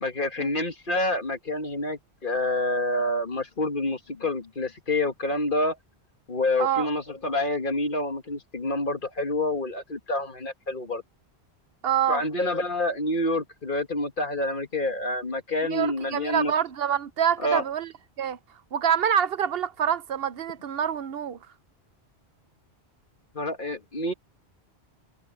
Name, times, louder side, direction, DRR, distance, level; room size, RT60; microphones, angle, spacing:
voice 1, 0.0-5.8 6.3-11.0 12.1-16.5 17.4-17.6 23.4-24.1, left 1 dB, 50° left, 2.0 m, -27 dB
voice 2, 11.8-12.2 15.6-17.9 18.2-18.4 18.7-21.4, right 8 dB, 65° right, 0.9 m, -26 dB
omnidirectional pair, 1.1 m